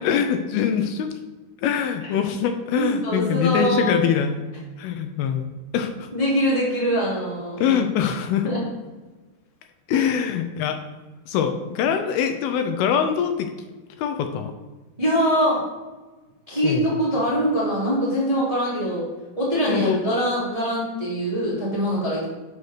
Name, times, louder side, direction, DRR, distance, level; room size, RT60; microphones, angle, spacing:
voice 1, 0.0-1.1 1.6-4.4 4.8-5.5 5.7-6.1 7.6-8.5 9.9-10.8 11.3-13.5 14.0-14.5 16.6-16.9 19.7-20.1, left 8 dB, 80° left, 7 dB, 2.3 m, -23 dB
voice 2, 2.7-4.0 6.1-7.8 8.4-8.6 9.9-10.1 15.0-15.6 16.5-19.1 19.4-22.2, equal, 15° right, -7 dB, 1.1 m, -23 dB
6.5 x 4.2 x 6.3 m, 1.2 s
omnidirectional pair, 4.5 m